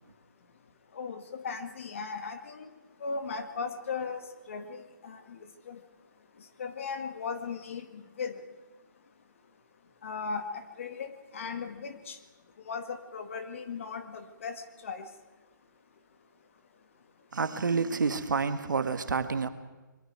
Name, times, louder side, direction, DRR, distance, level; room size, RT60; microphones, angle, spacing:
voice 1, 0.9-2.7 3.0-4.2 4.5-5.4 5.7-5.8 6.6-8.4 10.0-12.2 12.7-14.6 14.8-15.1, left 5 dB, 40° left, 8 dB, 1.9 m, -37 dB
voice 2, 17.3-19.5, right 5 dB, 70° right, 10 dB, 1.8 m, -28 dB
25.0 x 22.0 x 4.8 m, 1.2 s
hypercardioid pair, 170°, 11 cm